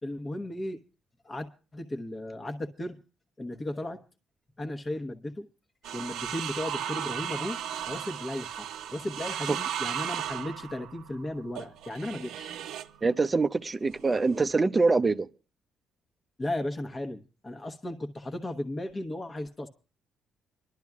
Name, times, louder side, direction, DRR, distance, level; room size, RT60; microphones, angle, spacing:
voice 1, 0.0-0.8 1.2-3.0 3.4-4.0 4.6-5.5 5.9-7.6 7.9-12.6 16.4-19.7, left 1 dB, 30° left, 1.1 m, -35 dB
sound 1, 5.8-13.0 13.9-14.5, right 9 dB, 90° right, 0.7 m, -36 dB
voice 2, 13.0-15.3, right 3 dB, 25° right, 0.6 m, -24 dB
26.0 x 12.0 x 2.4 m
cardioid pair, 90°, 0 cm